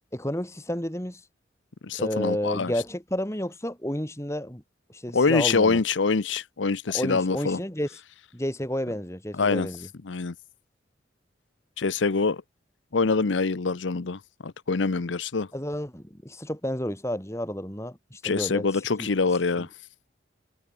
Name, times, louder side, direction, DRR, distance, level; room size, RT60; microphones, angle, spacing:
voice 1, 0.1-1.2 2.0-4.6 4.9-5.8 6.9-8.0 8.3-9.9 15.5-18.7 19.0-19.1 19.6-19.7, equal, 15° left, 2.9 m, -31 dB
voice 2, 1.8-2.7 5.1-7.6 9.4-9.7 10.1-10.3 11.8-12.4 12.9-15.5 18.2-19.7, left 4 dB, 85° left, 0.7 m, -25 dB
head